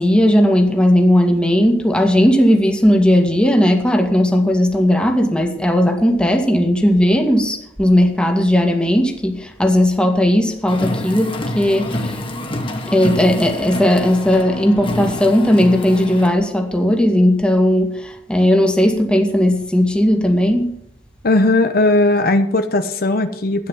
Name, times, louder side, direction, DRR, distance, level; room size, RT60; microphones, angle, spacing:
voice 1, 0.0-12.2 12.9-20.8, left 1 dB, 5° left, 3 dB, 2.1 m, -16 dB
Car, 10.7-16.3, left 1 dB, 30° left, 2.0 m, -27 dB
voice 2, 21.2-23.7, left 2 dB, 60° left, 8 dB, 1.0 m, -17 dB
13.0 x 9.4 x 7.3 m, 0.69 s
head